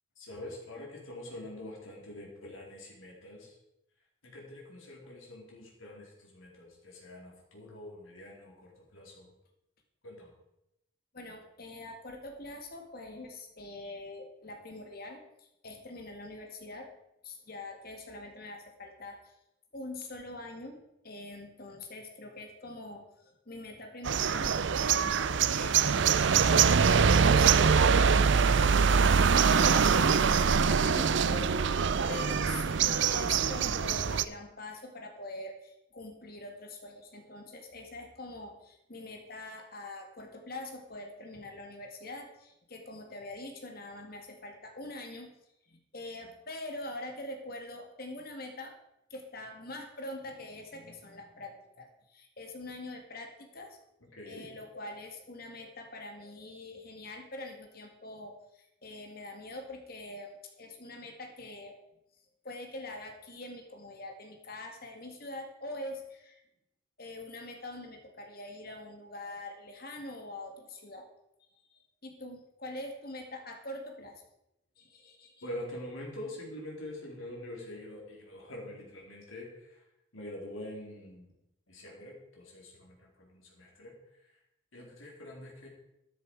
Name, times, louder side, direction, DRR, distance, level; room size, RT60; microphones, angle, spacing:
voice 1, 0.2-3.6 4.2-9.3 10.0-10.3 54.1-54.5 75.4-79.8 80.1-81.3 81.7-83.9 84.7-85.7, left 1 dB, 75° left, -2 dB, 4.0 m, -45 dB
voice 2, 11.1-16.9 17.2-19.4 19.7-20.8 21.0-26.1 26.4-31.6 32.1-45.3 45.7-48.7 49.1-53.8 54.3-61.8 62.4-66.4 67.0-71.1 71.7-74.2 74.8-75.4, left 2 dB, 45° left, 3 dB, 2.1 m, -44 dB
sound 1, 24.0-34.2, right 6 dB, 60° right, 0.5 m, -24 dB
12.5 x 10.0 x 4.8 m, 0.85 s
head